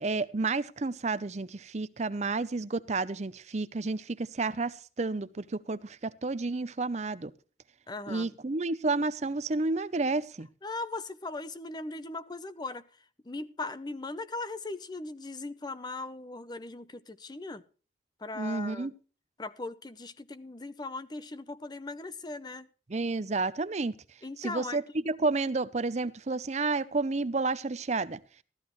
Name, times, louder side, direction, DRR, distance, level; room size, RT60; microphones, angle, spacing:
voice 1, 0.0-7.3 8.1-10.5 18.4-18.9 22.9-24.0 24.4-28.2, right 3 dB, 40° right, 0.6 m, -31 dB
voice 2, 7.9-8.4 10.6-17.6 18.2-18.9 19.4-22.7 24.2-24.8, left 3 dB, 20° left, 0.6 m, -39 dB
15.0 x 13.0 x 3.1 m
head